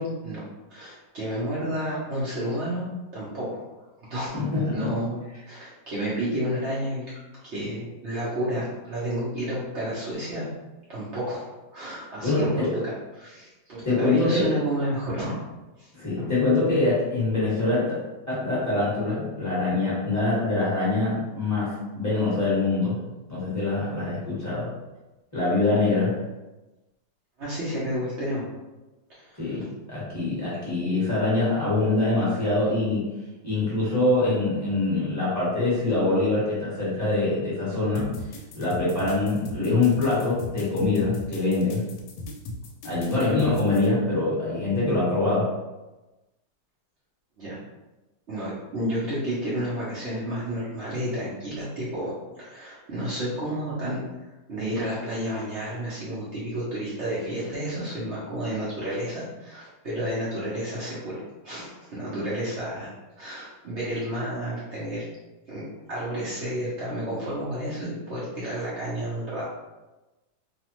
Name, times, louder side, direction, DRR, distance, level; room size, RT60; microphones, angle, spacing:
voice 1, 0.0-3.6 4.1-4.4 4.7-7.1 7.4-10.5 10.9-11.5 11.7-15.4 15.8-15.9 16.2-16.3 27.4-28.5 29.1-29.6 47.4-47.6 48.3-54.0 54.5-62.9 63.2-65.0 65.5-65.6 65.9-69.4, equal, 70° right, -9 dB, 0.6 m, -31 dB
voice 2, 4.3-4.7 12.2-12.7 13.8-14.5 15.9-18.0 18.3-23.0 23.3-24.7 25.3-26.2 29.4-33.0 33.4-38.1 38.5-41.8 42.8-45.5, left 2 dB, 10° left, -9 dB, 0.8 m, -24 dB
sound 1, 37.9-43.9, left 2 dB, 80° left, 1.3 m, -37 dB
3.2 x 2.1 x 2.9 m, 1.1 s
omnidirectional pair, 2.2 m